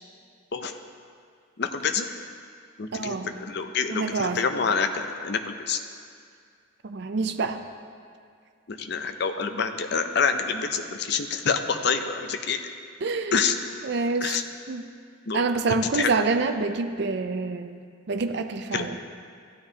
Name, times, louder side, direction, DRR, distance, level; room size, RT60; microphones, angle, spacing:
voice 1, 1.6-2.1 2.8-5.8 8.7-12.6 13.3-13.6 14.2-14.4 15.3-15.4 15.9-16.1 18.7-18.9, left 5 dB, 55° left, 7 dB, 0.5 m, -27 dB
voice 2, 2.9-3.3 3.9-4.4 6.8-7.6 13.0-13.5 13.8-14.4 14.7-14.8 15.3-17.7 18.1-19.0, right 4 dB, 55° right, 8 dB, 0.4 m, -27 dB
15.0 x 9.7 x 2.9 m, 2.2 s
head